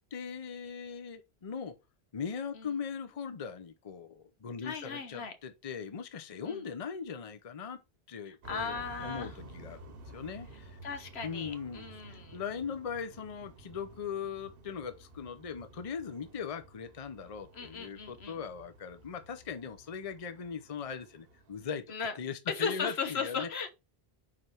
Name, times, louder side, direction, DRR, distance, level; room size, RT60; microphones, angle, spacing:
voice 1, 0.1-1.8 2.1-7.8 8.1-10.8 11.2-21.9 22.2-23.5, left 6 dB, 40° left, 0.7 m, -40 dB
voice 2, 4.6-5.3 6.4-6.6 8.3-9.3 10.8-12.4 17.5-18.4 21.9-22.1 22.5-23.7, left 5 dB, 80° left, 1.3 m, -37 dB
sound 1, 8.4-21.7, right 2 dB, 65° right, 1.1 m, -53 dB
4.8 x 4.6 x 5.4 m
omnidirectional pair, 1.1 m